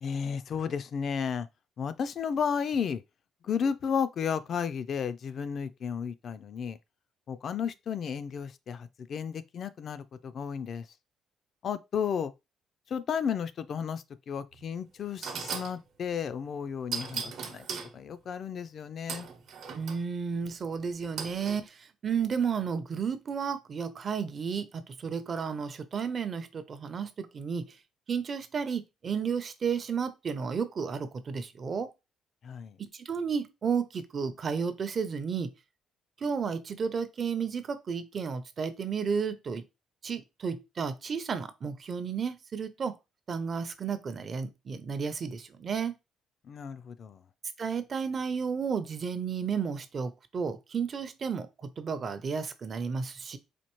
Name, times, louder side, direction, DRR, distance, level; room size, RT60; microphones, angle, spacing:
voice 1, 0.0-1.5 1.8-3.0 3.4-6.8 7.3-10.9 11.6-12.3 12.9-17.7 17.9-19.3 32.4-32.8 46.4-47.2, left 7 dB, 50° left, 0.3 m, -33 dB
sound 1, 14.5-14.6 15.2-15.8 16.9-17.9 19.1-20.0 21.2-21.6, right 6 dB, 65° right, 0.8 m, -37 dB
voice 2, 19.7-27.8 28.1-31.9 32.9-35.5 36.2-39.6 40.0-43.0 43.3-45.9 47.6-53.4, right 6 dB, 40° right, 0.5 m, -32 dB
4.3 x 2.6 x 3.0 m
cardioid pair, 130°, 0 cm